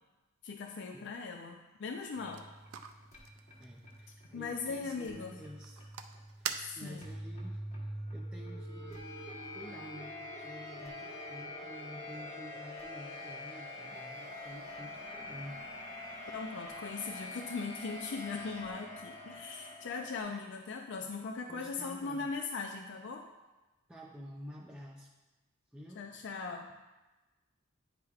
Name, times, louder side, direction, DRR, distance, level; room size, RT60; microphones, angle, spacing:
voice 1, 0.4-2.5 4.3-5.4 6.6-7.1 16.3-23.3 25.9-26.7, left 4 dB, 55° left, 3 dB, 0.4 m, -39 dB
sound 1, 2.0-7.2, right 8 dB, 75° right, 0.4 m, -46 dB
sound 2, 2.1-20.2, left 1 dB, 30° left, 1.2 m, -45 dB
voice 2, 3.6-5.8 6.4-7.6 8.1-9.0 9.5-15.6 21.5-22.3 23.9-25.1 25.7-26.1, equal, 5° right, -3 dB, 0.4 m, -50 dB
9.5 x 4.8 x 2.4 m, 1.1 s
head